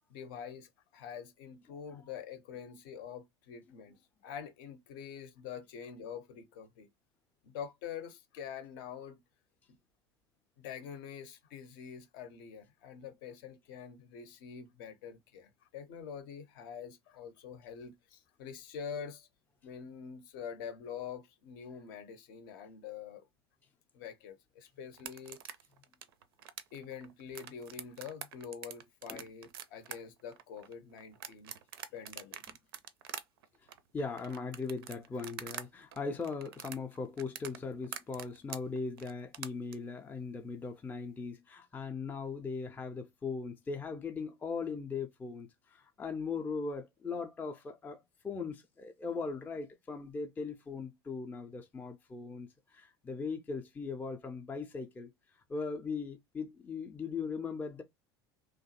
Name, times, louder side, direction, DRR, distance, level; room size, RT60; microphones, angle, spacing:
voice 1, 0.1-4.0 4.2-6.9 7.4-9.2 10.6-19.3 19.6-23.3 23.9-25.4 26.7-31.5 31.9-32.4, left 7 dB, 50° left, 0.6 m, -45 dB
sound 1, 24.9-35.7 35.9-39.7, right 10 dB, 60° right, 0.4 m, -45 dB
voice 2, 33.9-57.8, left 4 dB, 15° left, 0.4 m, -39 dB
2.9 x 2.2 x 2.7 m
figure-of-eight pair, 75°, 14 cm